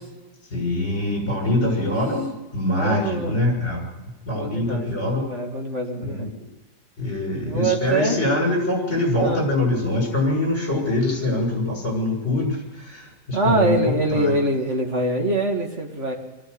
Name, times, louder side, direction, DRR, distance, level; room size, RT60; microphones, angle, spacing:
voice 1, 0.5-5.2 6.0-6.3 7.0-14.3, left 1 dB, 35° left, -1 dB, 7.4 m, -24 dB
voice 2, 2.8-3.3 4.3-6.3 7.4-8.2 9.2-9.4 13.3-16.1, right 2 dB, 35° right, 1 dB, 2.8 m, -24 dB
23.0 x 14.0 x 8.1 m, 1.1 s
omnidirectional pair, 2.1 m